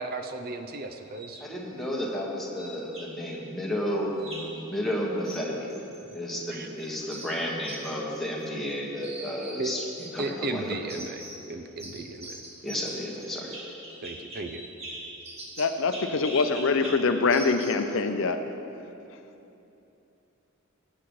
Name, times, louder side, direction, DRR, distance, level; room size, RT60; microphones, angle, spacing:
voice 1, 0.0-1.5 6.5-7.0 9.6-9.7 10.2-12.4 14.0-14.6, right 2 dB, 45° right, 6 dB, 0.5 m, -35 dB
sound 1, 1.1-1.4 2.6-3.4 4.2-4.6 5.2-6.5 6.8-8.7 9.0-10.4 10.9-11.5 11.8-17.9, right 1 dB, 30° right, 1.4 m, -43 dB
voice 2, 1.4-5.8 6.1-9.8 10.1-10.6 12.6-13.7, equal, ahead, -4 dB, 1.6 m, -32 dB
voice 3, 15.6-18.4, left 4 dB, 65° left, 7 dB, 0.6 m, -24 dB
19.5 x 8.3 x 3.2 m, 2.9 s
head